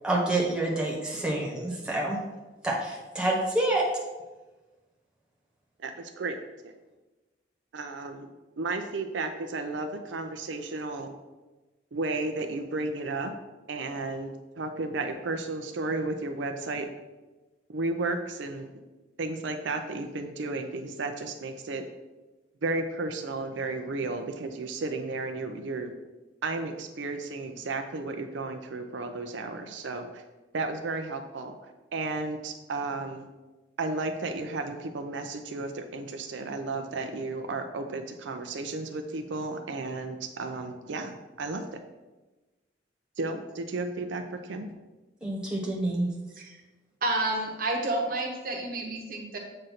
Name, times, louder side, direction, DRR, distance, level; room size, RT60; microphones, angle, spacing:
voice 1, 0.0-2.2 2.6-3.8 45.2-46.1, right 2 dB, 5° right, -4 dB, 1.2 m, -27 dB
voice 2, 5.8-6.4 6.6-6.7 7.7-8.3 8.6-11.1 11.9-13.3 13.7-14.3 14.6-16.9 17.7-18.7 19.2-21.8 22.6-25.9 26.4-30.2 30.5-31.6 31.9-33.3 33.8-41.8 43.2-44.7, right 3 dB, 80° right, 6 dB, 0.5 m, -33 dB
voice 3, 47.0-49.4, right 2 dB, 50° right, 1 dB, 0.9 m, -30 dB
7.6 x 2.6 x 5.7 m, 1.2 s
head